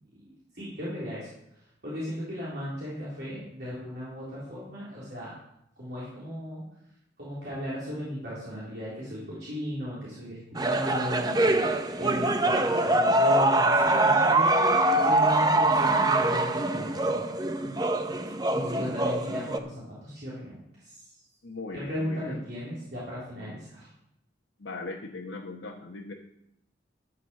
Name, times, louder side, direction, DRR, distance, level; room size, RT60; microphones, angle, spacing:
voice 1, 0.5-1.3 1.8-5.3 5.8-6.6 7.2-17.3 18.5-20.6 20.8-20.9 21.7-23.8, equal, 55° right, -8 dB, 3.8 m, -36 dB
sound 1, 10.6-19.6, right 2 dB, 20° right, 0.6 m, -24 dB
voice 2, 21.4-22.4 23.4-23.5 24.6-26.1, left 3 dB, 75° left, -1 dB, 1.2 m, -39 dB
12.5 x 6.5 x 6.4 m, 0.78 s
head